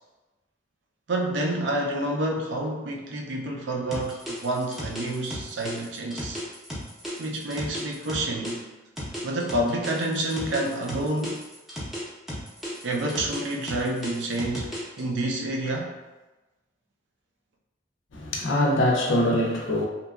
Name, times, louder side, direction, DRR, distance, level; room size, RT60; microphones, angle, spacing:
voice 1, 1.1-6.4 7.2-8.6 9.2-11.4 12.8-16.0, right 1 dB, 70° right, 0 dB, 0.5 m, -28 dB
sound 1, 3.9-8.5 9.0-12.0 12.3-15.0, equal, ahead, 0.5 m, -34 dB
voice 2, 18.1-19.8, left 1 dB, 85° left, 0 dB, 0.5 m, -23 dB
2.7 x 2.2 x 2.3 m, 1.1 s
head